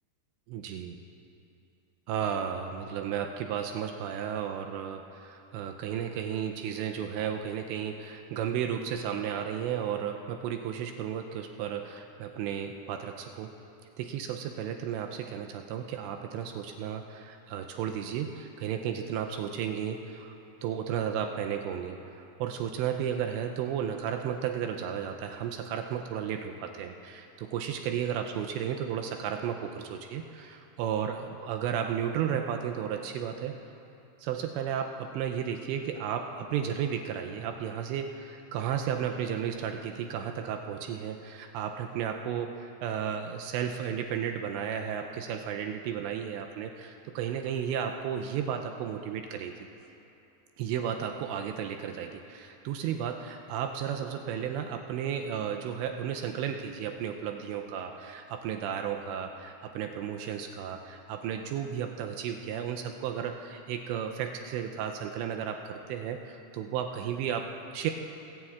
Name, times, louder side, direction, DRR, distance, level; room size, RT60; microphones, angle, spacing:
voice 1, 0.5-1.0 2.1-13.5 14.0-20.3 20.6-33.6 34.2-49.5 50.6-67.9, right 8 dB, 85° right, 4 dB, 2.7 m, -33 dB
20.5 x 16.5 x 2.4 m, 2.8 s
omnidirectional pair, 5.2 m